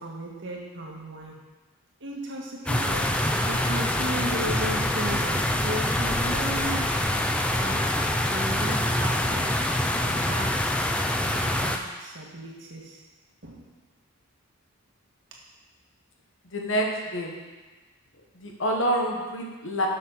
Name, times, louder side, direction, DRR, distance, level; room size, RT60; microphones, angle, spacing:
voice 1, 0.0-1.4 2.0-3.1 3.5-7.0 7.6-8.0 8.3-9.6 10.0-10.5 11.2-13.0 13.4-13.7 15.3-15.4, right 1 dB, 60° right, -2 dB, 1.6 m, -35 dB
sound 1, 2.7-11.8, left 1 dB, 5° left, 0.4 m, -25 dB
voice 2, 16.4-17.4 18.3-19.9, right 1 dB, 60° left, 0 dB, 1.3 m, -27 dB
6.9 x 6.0 x 5.6 m, 1.2 s
head